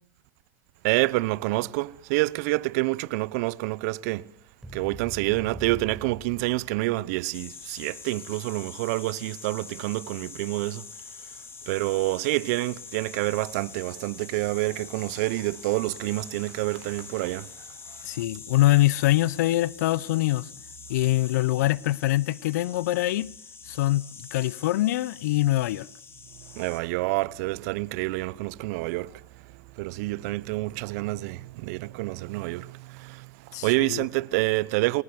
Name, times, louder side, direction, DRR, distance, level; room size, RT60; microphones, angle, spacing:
voice 1, 0.8-4.3 4.7-10.8 11.7-17.5 26.5-29.2 29.5-35.0, right 21 dB, 60° right, 0.9 m, -28 dB
sound 1, 4.6-7.1, right 2 dB, 5° right, 5.4 m, -43 dB
sound 2, 7.3-26.8, left 5 dB, 25° left, 4.6 m, -45 dB
voice 2, 18.0-20.5 20.9-23.3 23.7-25.9 33.5-34.0, left 16 dB, 70° left, 0.9 m, -24 dB
30.0 x 19.5 x 8.0 m
hypercardioid pair, 100°, 9 cm